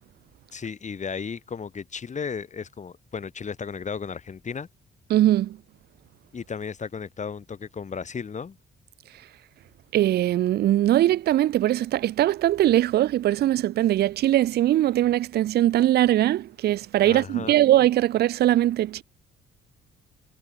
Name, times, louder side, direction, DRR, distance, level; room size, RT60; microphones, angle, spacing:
voice 1, 0.5-4.7 6.3-8.6 17.0-17.6, left 6 dB, 35° left, 1.9 m, -34 dB
voice 2, 5.1-5.6 9.9-19.0, right 13 dB, 55° right, 0.4 m, -21 dB
cardioid pair, 90°, 20 cm